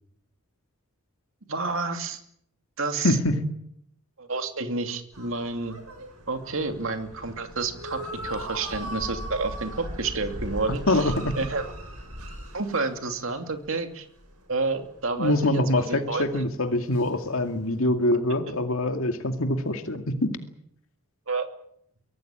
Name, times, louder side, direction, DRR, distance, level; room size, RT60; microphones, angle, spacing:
voice 1, 1.5-2.2 2.8-3.2 4.2-5.7 6.3-11.1 11.4-11.7 12.5-14.1 14.5-16.4 21.3-21.5, right 3 dB, 60° right, 6 dB, 2.7 m, -30 dB
voice 2, 3.0-3.5 10.9-11.3 15.2-20.5, left 1 dB, 65° left, 6 dB, 2.3 m, -24 dB
sound 1, 5.1-13.7 13.9-16.4 16.8-17.5, equal, 80° right, 6.6 m, -39 dB
24.0 x 18.0 x 8.9 m, 0.73 s
head